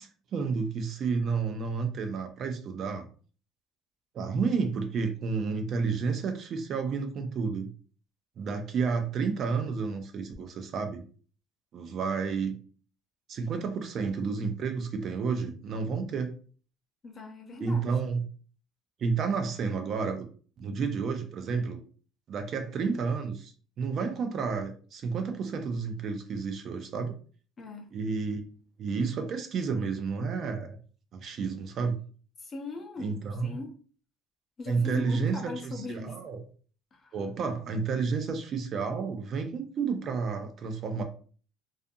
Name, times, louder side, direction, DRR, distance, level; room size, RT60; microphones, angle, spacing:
voice 1, 0.0-3.1 4.1-7.7 8.4-11.0 11.7-12.6 13.3-16.3 17.6-18.2 19.0-20.3 20.6-21.8 22.3-23.5 23.8-27.1 27.9-28.4 28.8-30.8 31.1-32.0 33.0-33.5 34.7-36.4 37.1-41.0, right 5 dB, 40° right, 0.4 m, -31 dB
voice 2, 17.0-18.0 27.6-27.9 32.4-33.7 34.6-36.2 36.9-37.2, left 3 dB, 25° left, 0.6 m, -40 dB
2.5 x 2.4 x 2.6 m
cardioid pair, 145°, 0 cm